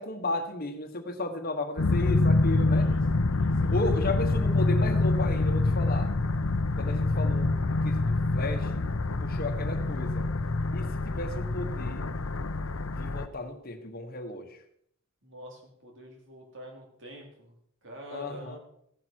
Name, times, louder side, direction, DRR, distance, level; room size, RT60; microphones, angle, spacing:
voice 1, 0.0-2.9 3.6-6.1 6.8-8.9 9.2-10.3 10.7-12.1 12.8-14.6 18.1-18.6, left 2 dB, 45° left, 6 dB, 1.3 m, -34 dB
sound 1, 1.8-13.3, left 2 dB, 70° left, 0.8 m, -26 dB
voice 2, 3.3-3.9 15.2-17.5 17.8-18.6, equal, 60° right, 0 dB, 3.8 m, -46 dB
15.5 x 11.0 x 4.6 m, 0.71 s
head